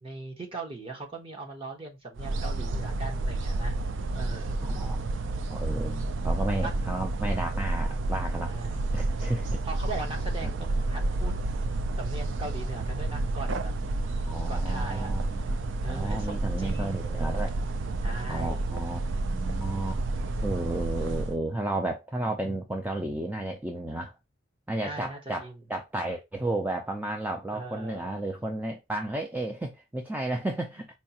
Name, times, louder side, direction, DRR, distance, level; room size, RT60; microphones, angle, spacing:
voice 1, 0.0-3.8 4.1-4.6 5.8-6.2 6.6-6.8 8.4-11.3 12.0-13.7 14.5-15.1 15.8-17.0 18.0-18.6 24.8-25.6 27.5-28.3, right 2 dB, 30° right, 0.9 m, -40 dB
sound 1, 2.2-21.4, right 2 dB, 70° right, 0.4 m, -30 dB
voice 2, 4.6-5.0 5.5-9.6 10.4-10.5 14.3-15.5 15.9-17.5 18.3-20.0 20.4-24.1 24.7-30.9, right 2 dB, 10° right, 0.4 m, -33 dB
4.4 x 2.4 x 2.8 m
head